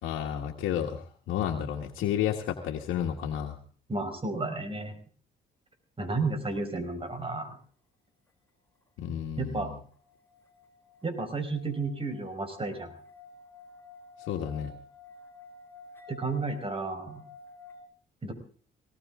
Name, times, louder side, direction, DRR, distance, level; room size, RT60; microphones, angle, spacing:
voice 1, 0.0-3.6 9.0-9.7 14.3-14.7, left 9 dB, 90° left, 0 dB, 1.7 m, -31 dB
voice 2, 3.9-4.9 6.0-7.6 9.4-9.7 11.0-12.9 16.1-17.2 18.2-18.3, right 3 dB, 25° right, 7 dB, 4.8 m, -32 dB
sound 1, 9.4-17.8, left 3 dB, 10° left, 4.0 m, -51 dB
18.5 x 18.5 x 3.8 m, 0.44 s
cardioid pair, 90°, 20 cm